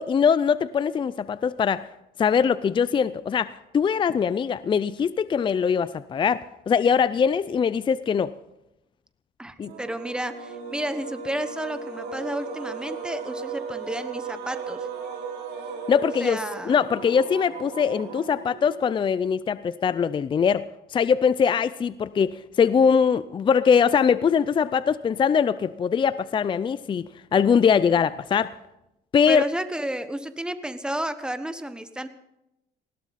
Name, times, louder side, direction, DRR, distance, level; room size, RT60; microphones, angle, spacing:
voice 1, 0.0-1.9 2.2-8.3 9.6-9.7 15.9-16.4 16.7-20.6 20.9-28.5 29.1-29.4, left 6 dB, 30° left, 15 dB, 0.5 m, -22 dB
voice 2, 9.4-14.9 16.2-16.8 29.3-32.1, right 1 dB, 5° right, 10 dB, 1.2 m, -31 dB
sound 1, 9.6-19.0, right 5 dB, 75° right, 4.3 m, -36 dB
20.0 x 16.5 x 4.2 m, 0.88 s
cardioid pair, 110°, 17 cm